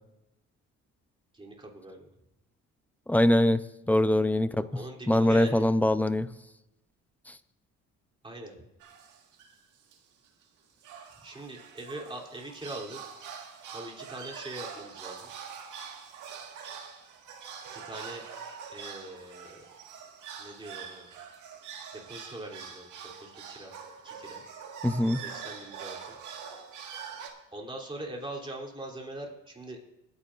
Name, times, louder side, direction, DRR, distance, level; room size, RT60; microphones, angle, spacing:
voice 1, 1.3-2.1 4.7-5.6 8.2-8.5 11.2-13.0 13.7-15.3 17.7-18.2 18.7-19.6 20.4-21.1 21.9-22.9 23.2-23.7 24.0-24.4 25.2-26.0 27.5-29.8, right 1 dB, 15° right, -1 dB, 3.0 m, -42 dB
voice 2, 3.1-3.6 3.9-4.7 5.1-6.3 7.3-7.4 24.8-25.2, left 1 dB, 5° left, 12 dB, 0.5 m, -23 dB
sound 1, 8.8-9.6 9.9-10.0 10.2-10.4 10.8-27.3, right 7 dB, 85° right, 1.7 m, -44 dB
21.5 x 9.7 x 2.5 m, 0.91 s
cardioid pair, 90°, 30 cm